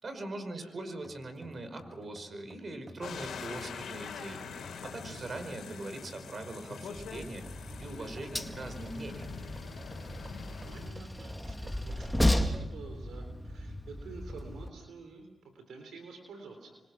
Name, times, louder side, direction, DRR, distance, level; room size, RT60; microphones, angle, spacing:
voice 1, 0.0-4.4 4.8-7.5 7.8-9.3, right 2 dB, 50° right, 8 dB, 5.2 m, -41 dB
sound 1, 1.0-13.0 13.4-13.5 14.3-14.9, right 1 dB, 25° right, 2.6 m, -53 dB
sound 2, 3.0-10.9, left 6 dB, 80° left, 3.6 m, -44 dB
Train, 6.9-14.7, left 1 dB, 5° left, 2.0 m, -34 dB
voice 2, 10.6-16.8, right 4 dB, 80° right, 5 dB, 3.6 m, -49 dB
27.0 x 26.0 x 6.3 m, 1.0 s
supercardioid pair, 50°, 0 cm